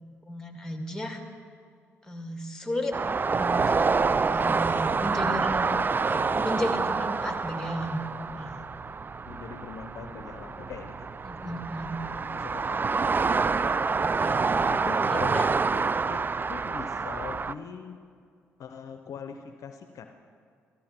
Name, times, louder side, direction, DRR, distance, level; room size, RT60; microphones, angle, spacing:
voice 1, 0.3-1.2 2.0-3.0 3.4-3.8 4.3-5.7 6.1-8.0 8.4-8.6 11.2-12.0 14.0-14.5 15.1-15.5, left 1 dB, 10° left, 4 dB, 2.0 m, -34 dB
sound 1, 2.9-17.5, right 4 dB, 30° right, 0.4 m, -27 dB
voice 2, 9.3-11.2 12.3-13.1 14.7-18.0 18.6-20.2, left 6 dB, 65° left, 7 dB, 0.6 m, -42 dB
13.5 x 12.5 x 4.4 m, 2.2 s
hypercardioid pair, 45°, 6 cm